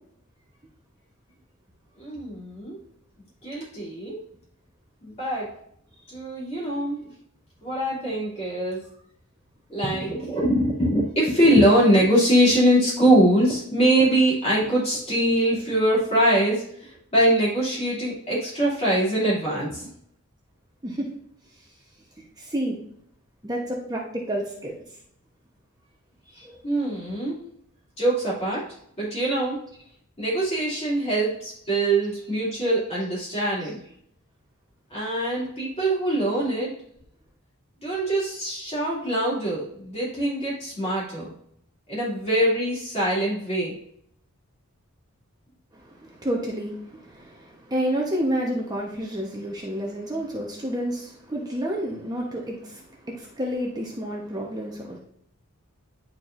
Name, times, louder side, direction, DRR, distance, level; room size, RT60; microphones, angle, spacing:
voice 1, 2.0-2.8 3.4-4.2 5.0-5.5 6.1-7.0 7.6-8.8 9.7-19.9 26.6-27.4 28.0-28.6 29.0-29.6 30.2-33.8 34.9-36.7 37.8-41.3 41.9-43.7, right 1 dB, 30° left, -7 dB, 2.8 m, -23 dB
voice 2, 22.4-22.8 23.4-24.7 26.3-26.6 31.7-31.8 32.3-32.4 33.8-33.9 45.7-55.0, equal, 20° right, -2 dB, 1.1 m, -30 dB
10.5 x 4.5 x 2.6 m, 0.69 s
head